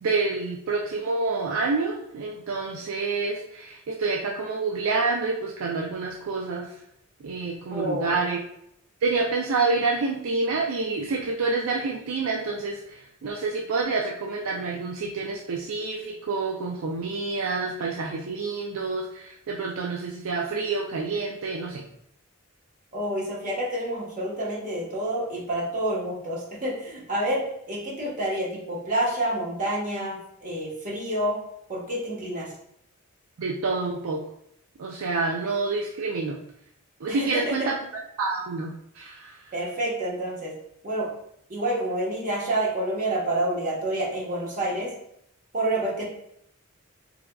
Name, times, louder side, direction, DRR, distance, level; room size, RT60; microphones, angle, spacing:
voice 1, 0.0-6.7 7.2-8.4 9.0-12.8 13.2-21.8 33.4-34.2 34.8-36.4 37.0-37.7 38.2-39.3, right 3 dB, 75° right, 0 dB, 0.4 m, -28 dB
voice 2, 7.7-8.2 22.9-31.4 31.7-32.5 37.1-37.7 39.5-40.5 40.8-41.1 41.5-44.9 45.5-46.0, right 1 dB, 40° right, -4 dB, 1.1 m, -28 dB
3.5 x 3.4 x 2.2 m, 0.75 s
head